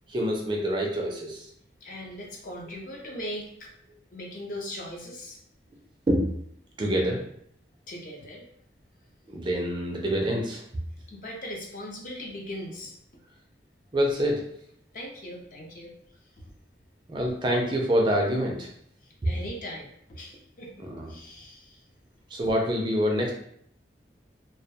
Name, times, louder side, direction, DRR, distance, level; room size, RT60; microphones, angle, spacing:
voice 1, 0.1-1.5 6.1-6.3 6.8-7.2 9.3-10.6 13.9-14.4 17.1-18.7 19.2-19.3 20.8-21.1 22.3-23.3, equal, 25° right, 0 dB, 0.3 m, -26 dB
voice 2, 1.8-3.7 4.1-5.4 7.9-8.5 11.1-13.0 14.9-15.9 16.4-16.5 19.0-21.8, equal, 45° left, -1 dB, 0.5 m, -39 dB
2.2 x 2.1 x 2.7 m, 0.66 s
head